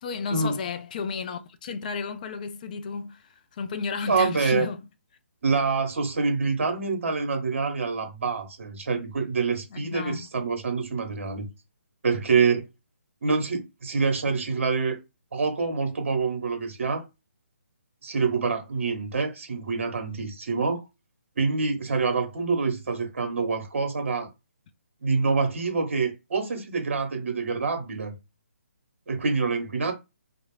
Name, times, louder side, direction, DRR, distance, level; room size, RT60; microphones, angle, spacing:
voice 1, 0.0-4.8 9.7-10.3, left 5 dB, 35° left, 0.3 m, -33 dB
voice 2, 4.1-4.7 5.4-11.5 12.0-12.6 13.2-15.0 15.3-17.0 18.0-20.8 21.4-24.3 25.0-28.1 29.1-29.9, right 4 dB, 60° right, 0.9 m, -26 dB
2.4 x 2.0 x 3.1 m
figure-of-eight pair, 150°, 7 cm